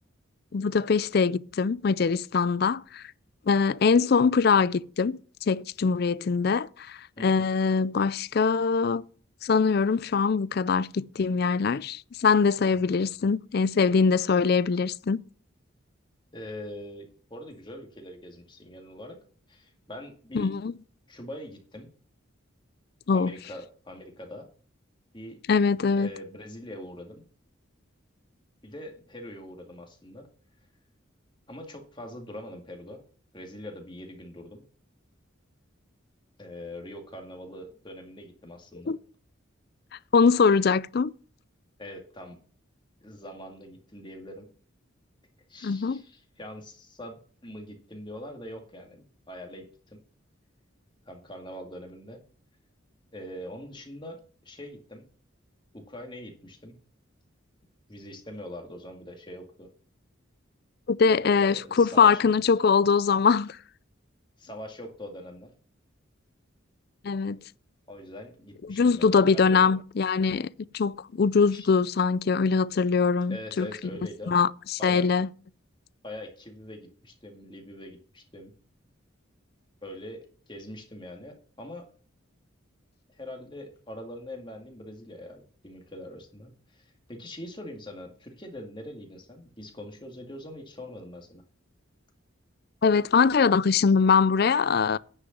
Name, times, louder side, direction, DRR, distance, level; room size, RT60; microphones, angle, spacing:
voice 1, 0.5-3.0 3.5-9.0 9.4-15.2 20.3-20.7 23.1-23.3 25.5-26.1 38.9-39.0 40.1-41.1 45.6-46.0 60.9-63.6 67.0-67.4 68.7-70.5 70.7-73.7 74.3-75.3 92.8-95.0, left 5 dB, 50° left, 0.4 m, -23 dB
voice 2, 7.2-7.5 16.3-19.2 19.5-20.6 21.1-21.9 23.1-24.5 25.1-25.4 25.9-27.2 28.6-30.3 31.5-33.0 33.3-34.6 36.4-38.9 41.8-42.4 43.0-44.5 45.5-50.0 51.1-52.2 53.1-55.1 55.7-56.8 57.9-59.7 61.1-62.3 64.4-65.5 67.9-69.7 71.5-71.7 73.3-74.3 74.8-75.1 76.0-78.5 79.8-81.9 83.2-91.4, left 1 dB, 25° left, 2.0 m, -43 dB
9.7 x 6.4 x 7.2 m
head